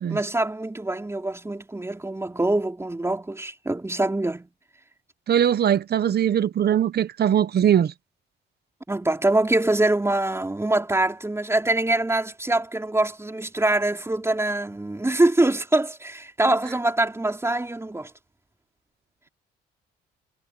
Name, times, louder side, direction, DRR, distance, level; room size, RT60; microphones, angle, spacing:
voice 1, 0.1-4.5 8.9-18.1, right 2 dB, 15° right, 3.8 m, -24 dB
voice 2, 5.3-7.9, right 9 dB, 55° right, 1.1 m, -21 dB
cardioid pair, 90°, 20 cm